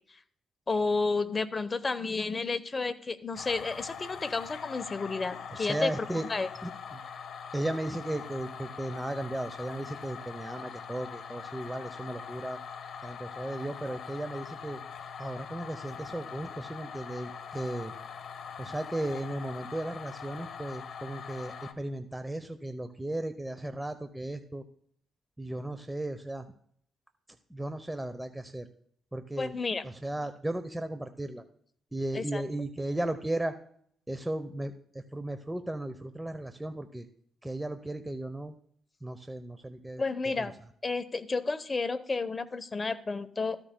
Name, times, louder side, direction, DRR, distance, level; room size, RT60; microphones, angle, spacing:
voice 1, 0.7-5.9 6.2-6.5 29.4-29.8 32.1-32.4 40.0-40.5 40.8-43.6, left 3 dB, 30° left, 11 dB, 0.9 m, -31 dB
sound 1, 3.3-21.7, left 7 dB, 60° left, 1.1 m, -43 dB
voice 2, 5.5-6.2 6.6-7.0 7.5-12.6 13.0-14.8 15.2-17.9 18.6-24.6 25.4-26.5 27.5-28.7 29.1-29.5 29.8-31.4 31.9-33.5 34.1-37.1 37.4-38.5 39.0-40.5, right 1 dB, 10° right, 8 dB, 0.7 m, -35 dB
14.0 x 13.5 x 2.2 m, 0.63 s
cardioid pair, 90°, 0 cm